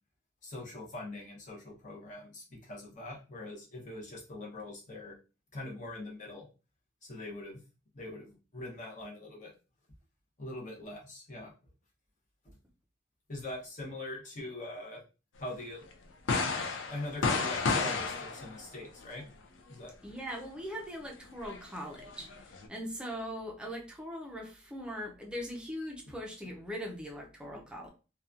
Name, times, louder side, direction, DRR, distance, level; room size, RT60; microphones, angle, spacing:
voice 1, 0.4-5.1 5.5-6.5 7.0-7.6 7.9-9.5 10.4-11.5 12.4-12.5 13.3-15.0 15.4-15.9 16.9-19.3 19.7-19.9 26.1-26.2, left 2 dB, 40° left, 0.8 m, -42 dB
sound 1, 15.9-16.0 16.3-19.0 21.3-22.7, left 4 dB, 80° left, 0.4 m, -32 dB
voice 2, 20.0-22.3 22.7-27.9, equal, 5° right, 0.5 m, -40 dB
2.8 x 2.2 x 2.4 m
head